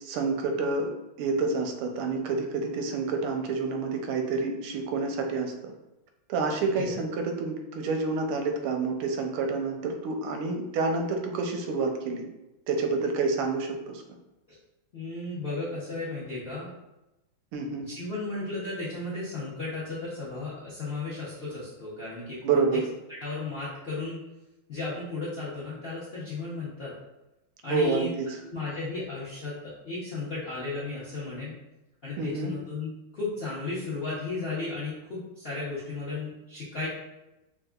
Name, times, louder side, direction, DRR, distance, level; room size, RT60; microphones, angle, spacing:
voice 1, 0.0-0.9 1.2-5.7 6.3-12.2 12.7-14.0 17.5-17.9 22.4-22.8 27.7-28.4 32.2-32.5, right 4 dB, 85° right, 3 dB, 1.4 m, -28 dB
voice 2, 14.9-16.7 17.9-22.4 23.2-24.2 24.7-26.9 27.6-28.1 28.5-31.5 32.0-36.9, left 3 dB, 60° left, -9 dB, 0.6 m, -34 dB
4.5 x 2.4 x 2.3 m, 0.97 s
omnidirectional pair, 2.3 m